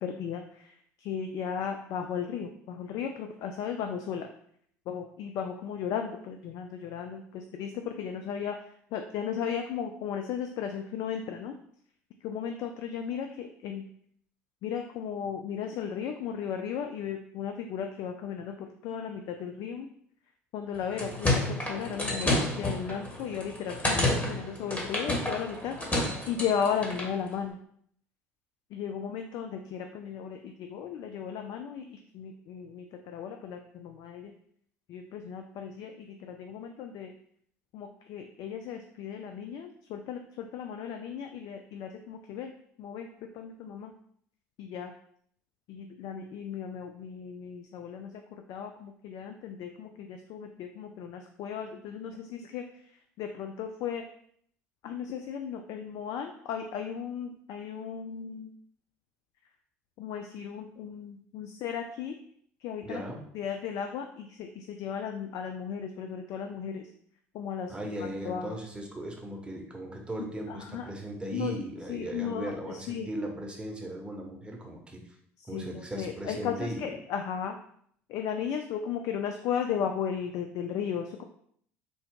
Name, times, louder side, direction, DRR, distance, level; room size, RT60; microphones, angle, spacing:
voice 1, 0.0-0.7 1.0-4.3 4.9-8.6 8.9-11.5 12.2-13.8 14.6-19.9 20.5-27.6 28.7-34.3 34.9-37.1 37.7-42.5 42.8-43.9 44.6-44.9 45.7-48.1 48.5-52.7 53.2-54.0 54.8-58.5 60.0-62.2 62.6-63.0 63.3-66.9 67.3-68.5 70.5-70.9 71.3-71.6 71.9-73.1 75.4-77.6 78.1-81.2, left 7 dB, 55° left, 5 dB, 0.4 m, -35 dB
sound 1, 20.7-27.1, left 1 dB, 20° left, 1.3 m, -30 dB
voice 2, 62.8-63.2 67.7-75.0 75.5-76.9, right 1 dB, 15° right, 1 dB, 1.0 m, -37 dB
3.9 x 2.2 x 3.6 m, 0.65 s
hypercardioid pair, 70°, 8 cm